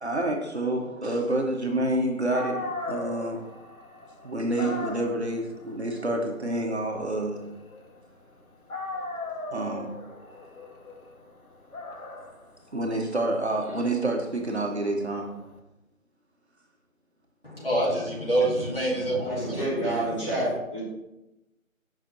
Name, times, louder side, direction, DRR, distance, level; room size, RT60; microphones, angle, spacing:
voice 1, 0.0-3.5 4.2-7.4 9.5-9.9 12.7-15.3, right 1 dB, 50° right, 1 dB, 0.8 m, -28 dB
Dog, 2.0-2.1 2.3-8.3 8.7-15.5, left 2 dB, 90° left, 1.2 m, -39 dB
voice 2, 17.4-20.4, right 1 dB, 45° left, -5 dB, 1.2 m, -27 dB
voice 3, 19.2-20.8, right 1 dB, 25° left, -9 dB, 2.1 m, -28 dB
6.8 x 5.6 x 2.5 m, 0.95 s
figure-of-eight pair, 175°, 42 cm